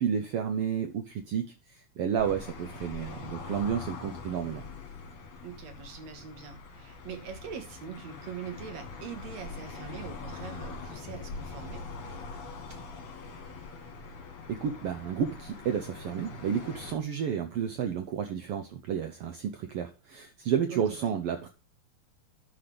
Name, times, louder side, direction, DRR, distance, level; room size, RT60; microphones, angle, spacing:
voice 1, 0.0-4.6 14.5-21.5, right 8 dB, 80° right, 1.3 m, -31 dB
sound 1, 2.2-16.9, left 4 dB, 50° left, 2.6 m, -43 dB
voice 2, 5.4-11.8 20.7-21.1, right 7 dB, 65° right, 2.5 m, -43 dB
10.0 x 5.1 x 5.9 m
omnidirectional pair, 3.5 m